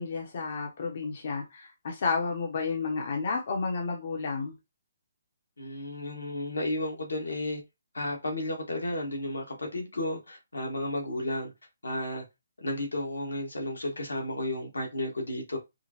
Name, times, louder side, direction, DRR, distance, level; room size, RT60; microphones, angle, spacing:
voice 1, 0.0-4.5, left 4 dB, 55° left, 1.0 m, -31 dB
voice 2, 5.6-7.6 7.9-11.5 11.8-12.2 12.6-15.6, left 1 dB, 85° left, 1.6 m, -33 dB
4.9 x 2.3 x 2.9 m
figure-of-eight pair, 140°, 0 cm